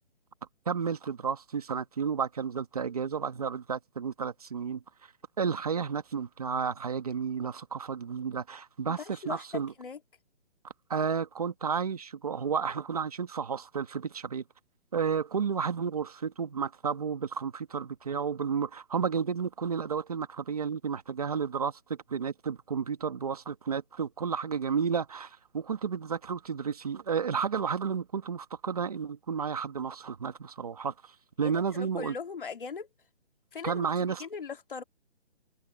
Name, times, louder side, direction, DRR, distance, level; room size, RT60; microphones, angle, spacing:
voice 1, 0.7-4.8 5.4-9.7 10.6-14.4 14.9-31.1 31.4-32.1 33.6-34.3, right 6 dB, 35° right, 1.7 m, -32 dB
voice 2, 8.9-9.4 9.8-10.0 31.4-32.9 33.5-33.8 34.2-34.8, left 5 dB, 50° left, 2.5 m, -39 dB
hypercardioid pair, 175°, 34 cm